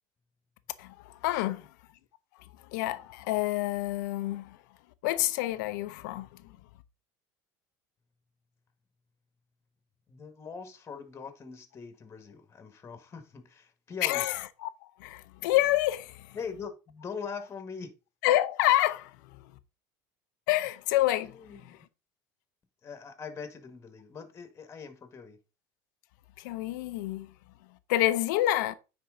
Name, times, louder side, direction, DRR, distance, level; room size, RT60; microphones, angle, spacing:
voice 1, 0.8-1.6 2.7-4.6 5.0-6.4 14.0-14.7 15.0-16.4 18.2-19.5 20.5-21.3 26.4-27.3 27.9-28.7, left 15 dB, 80° left, 0.8 m, -28 dB
voice 2, 1.3-1.6 10.1-14.3 16.3-18.0 21.2-21.8 22.8-25.4, left 5 dB, 25° left, 1.8 m, -42 dB
9.4 x 4.6 x 3.8 m
supercardioid pair, 115°, 10 cm